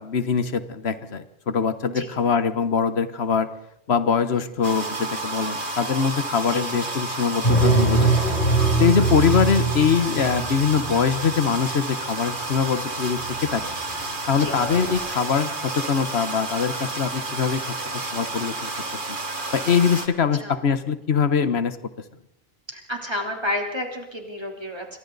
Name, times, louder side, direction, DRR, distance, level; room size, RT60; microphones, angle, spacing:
voice 1, 0.0-3.5 3.9-8.1 8.8-13.6 14.3-17.7 18.1-18.7 19.1-19.2 19.5-21.8, left 6 dB, 90° left, 12 dB, 1.4 m, -23 dB
sound 1, 4.6-20.1, right 2 dB, 55° right, 2.0 m, -31 dB
sound 2, 7.4-11.3 13.2-13.7 14.0-14.1 14.4-15.0, right 3 dB, 50° left, 8.1 m, -22 dB
voice 2, 22.7-25.0, left 1 dB, 25° right, 1 dB, 3.4 m, -30 dB
27.5 x 23.5 x 4.0 m, 0.82 s
omnidirectional pair, 1.0 m